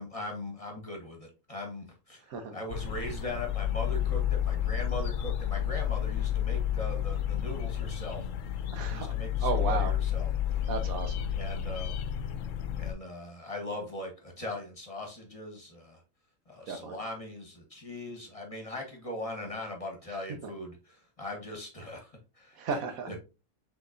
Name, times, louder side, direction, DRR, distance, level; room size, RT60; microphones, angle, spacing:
voice 1, 0.0-2.2 2.5-8.3 8.8-10.6 11.3-12.0 12.8-16.0 16.5-22.6 23.1-23.2, left 1 dB, 25° left, 1 dB, 1.1 m, -40 dB
sound 1, 2.7-12.9, left 10 dB, 70° left, 0.9 m, -31 dB
voice 2, 8.7-9.1 9.4-9.9 10.7-11.2 16.7-17.0 22.6-23.1, right 5 dB, 80° right, 7 dB, 1.3 m, -33 dB
6.0 x 3.4 x 2.5 m, 0.29 s
omnidirectional pair, 1.4 m